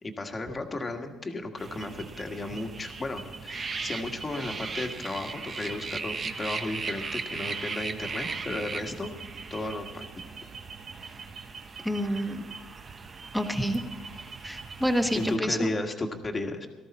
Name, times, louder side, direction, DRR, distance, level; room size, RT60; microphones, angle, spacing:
voice 1, 0.0-9.1 9.5-10.1 15.1-16.7, left 2 dB, 20° left, 4 dB, 1.6 m, -34 dB
sound 1, 1.6-15.4, right 4 dB, 35° right, 1.0 m, -38 dB
voice 2, 11.8-12.4 13.3-13.8 14.4-15.7, equal, ahead, 4 dB, 1.4 m, -28 dB
18.0 x 13.5 x 4.3 m, 1.2 s
cardioid pair, 115°, 0 cm